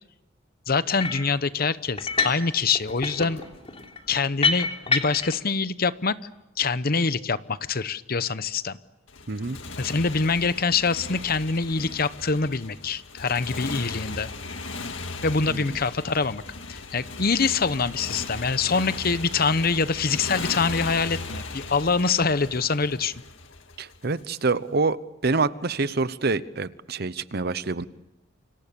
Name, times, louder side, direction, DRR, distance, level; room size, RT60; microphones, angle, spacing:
voice 1, 0.7-3.4 4.1-6.2 6.6-8.8 9.8-14.3 15.2-16.4 16.7-23.1, left 4 dB, 50° left, 15 dB, 0.9 m, -25 dB
sound 1, 1.0-1.3 2.0-2.5 2.8-5.4, left 4 dB, 30° left, 3.3 m, -27 dB
Motorcycle, 9.1-24.2, left 3 dB, 75° left, 2.0 m, -37 dB
voice 2, 9.3-9.6 15.5-15.8 23.8-25.0 25.2-27.9, right 3 dB, 55° right, 15 dB, 0.9 m, -26 dB
29.0 x 26.0 x 7.0 m, 0.95 s
head